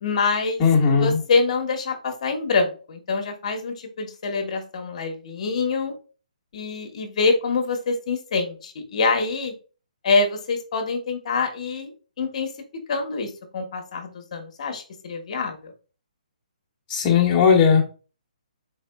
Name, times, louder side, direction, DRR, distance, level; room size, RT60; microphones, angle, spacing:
voice 1, 0.0-0.6 1.0-5.9 6.5-9.5 10.0-12.5 12.9-15.7, left 4 dB, 50° left, 5 dB, 1.0 m, -25 dB
voice 2, 0.6-1.2 16.9-17.8, left 6 dB, 25° left, -2 dB, 1.2 m, -17 dB
4.0 x 3.6 x 2.2 m, 0.36 s
hypercardioid pair, 150°, 4 cm